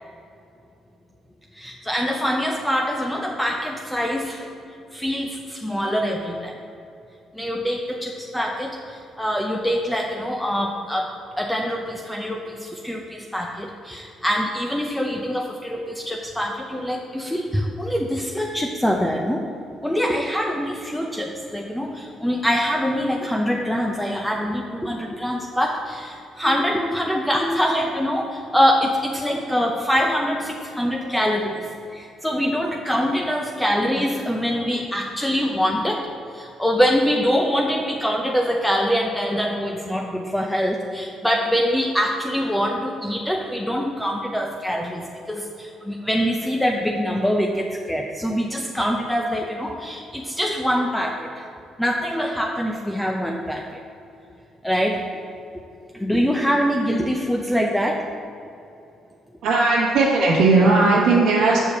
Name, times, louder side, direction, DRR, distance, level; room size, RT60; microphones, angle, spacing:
voice 1, 1.5-4.4 4.9-6.6 7.3-11.1 11.4-19.5 19.8-36.0 36.3-51.5 51.8-53.8 54.6-55.0 55.9-58.1, equal, 5° left, 1 dB, 0.6 m, -24 dB
voice 2, 59.4-61.6, right 3 dB, 80° right, -5 dB, 1.1 m, -17 dB
6.8 x 4.6 x 6.7 m, 2.7 s
cardioid pair, 90°, 0 cm